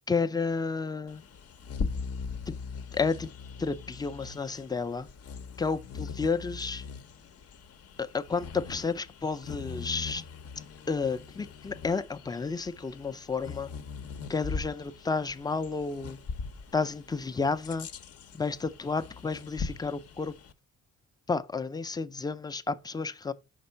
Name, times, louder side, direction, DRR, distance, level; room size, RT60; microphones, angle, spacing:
voice 1, 0.1-1.2 2.5-2.6 2.9-3.3 3.6-5.1 5.6-6.9 8.0-10.3 10.9-13.7 14.3-16.2 16.7-17.9 18.3-20.4 21.3-23.3, left 4 dB, 15° left, 0.4 m, -31 dB
Bird vocalization bird call bird song, 1.1-20.5, left 5 dB, 50° left, 0.7 m, -41 dB
5.2 x 3.7 x 5.4 m
cardioid pair, 90°, 30 cm